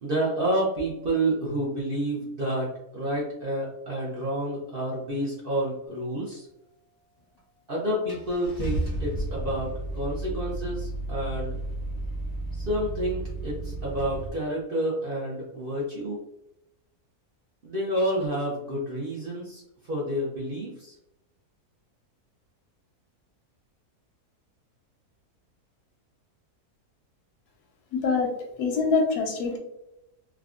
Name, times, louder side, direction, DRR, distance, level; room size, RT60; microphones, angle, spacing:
voice 1, 0.0-6.5 7.7-11.6 12.5-16.2 17.6-20.9, right 1 dB, 55° right, -4 dB, 0.6 m, -29 dB
Car / Engine starting, 7.4-7.5 8.1-14.3, right 2 dB, 20° left, 0.7 m, -33 dB
voice 2, 27.9-28.3 28.6-29.6, left 4 dB, 85° left, 3 dB, 1.2 m, -24 dB
3.5 x 2.2 x 2.4 m, 0.88 s
omnidirectional pair, 1.6 m